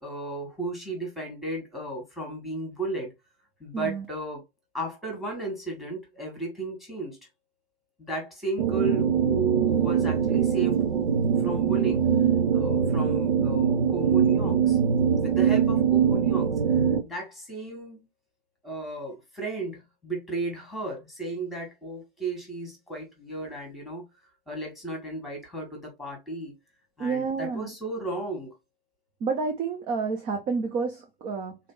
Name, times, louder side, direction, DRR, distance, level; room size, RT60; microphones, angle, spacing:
voice 1, 0.0-3.1 3.6-4.4 4.7-7.2 8.0-10.9 11.4-12.1 12.5-14.8 15.1-16.5 17.0-18.0 18.6-24.0 24.5-26.6 27.0-28.5, right 3 dB, ahead, 1.7 m, -34 dB
voice 2, 3.7-4.0 27.0-27.7 29.2-31.6, right 4 dB, 15° right, 0.5 m, -29 dB
sound 1, 8.6-17.0, right 7 dB, 60° right, 0.7 m, -23 dB
3.9 x 3.3 x 3.8 m
figure-of-eight pair, 115°, 30 cm